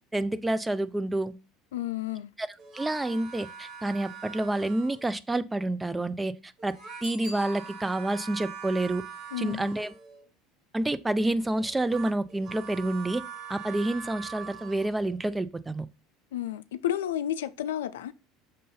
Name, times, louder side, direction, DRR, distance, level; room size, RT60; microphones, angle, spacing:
voice 1, 0.1-1.3 2.4-2.5 2.7-6.7 7.0-9.0 9.4-9.9 10.7-13.2 13.5-15.9, right 2 dB, 15° right, 0.5 m, -28 dB
voice 2, 1.7-2.3 9.3-9.7 16.3-18.1, left 11 dB, 80° left, 0.4 m, -31 dB
sound 1, 2.6-5.2 6.6-10.3 11.5-15.1, right 6 dB, 50° right, 1.4 m, -43 dB
Bicycle bell, 7.0-8.2 13.6-13.7, equal, 80° right, 3.6 m, -45 dB
6.6 x 2.6 x 5.5 m
hypercardioid pair, 75°, 0 cm